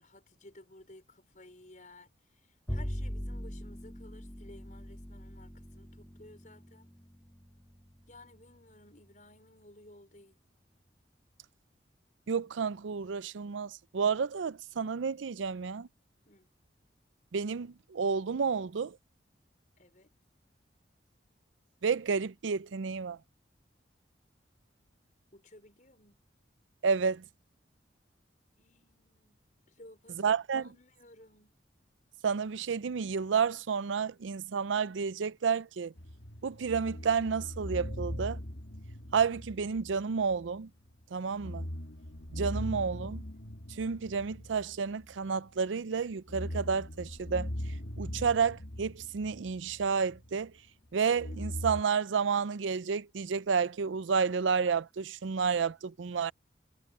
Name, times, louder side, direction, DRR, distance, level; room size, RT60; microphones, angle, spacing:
voice 1, 0.0-2.1 2.7-6.9 8.1-10.4 16.3-16.5 19.8-20.1 25.3-26.2 28.6-29.4 29.8-31.6, left 1 dB, 45° left, 5.3 m, -56 dB
Bowed string instrument, 2.7-9.1, equal, 15° left, 1.5 m, -42 dB
voice 2, 12.3-15.9 17.3-19.0 21.8-23.2 26.8-27.2 30.2-30.7 32.2-35.9 36.4-38.4 39.1-40.7 41.1-41.6 42.3-43.2 43.8-47.5 48.0-50.5 50.9-56.3, right 6 dB, 85° right, 0.5 m, -30 dB
sound 1, 36.0-40.6 40.9-41.0 41.3-45.6 46.1-50.4 51.2-51.8, equal, 70° left, 2.0 m, -40 dB
head